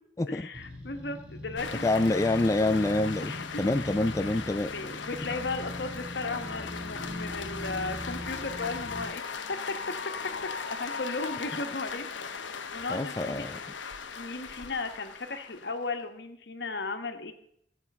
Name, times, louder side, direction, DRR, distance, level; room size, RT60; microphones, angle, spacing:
voice 1, 0.3-2.2 3.2-3.9 4.7-9.7 10.4-12.1 12.7-13.5 14.1-17.3, left 3 dB, 60° left, 6 dB, 1.4 m, -36 dB
sound 1, 0.5-9.0, left 1 dB, 5° right, 2.1 m, -41 dB
sound 2, 1.6-15.8, left 5 dB, 85° left, 1.0 m, -39 dB
voice 2, 1.8-4.7 12.9-13.6, left 2 dB, 15° left, 8 dB, 0.3 m, -26 dB
13.5 x 8.0 x 5.4 m, 0.70 s
head